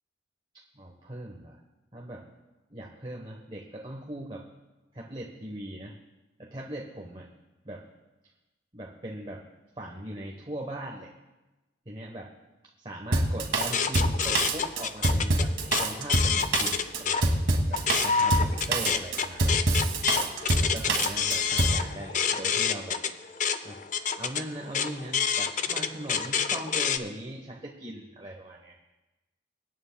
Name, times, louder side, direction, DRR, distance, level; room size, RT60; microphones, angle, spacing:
voice 1, 0.7-1.6 1.9-2.2 2.7-4.4 4.9-6.0 6.4-7.3 7.6-7.9 8.7-9.4 9.8-11.1 11.9-12.3 12.8-15.5 15.8-19.7 20.6-23.0 23.6-23.8 24.1-28.7, right 1 dB, 30° right, -1 dB, 1.0 m, -40 dB
Drum kit, 13.1-21.8, right 2 dB, 80° right, 1.7 m, -25 dB
sound 1, 13.6-17.2 17.6-27.0, left 6 dB, 40° left, 0.5 m, -28 dB
25.0 x 9.4 x 2.3 m, 1.1 s
head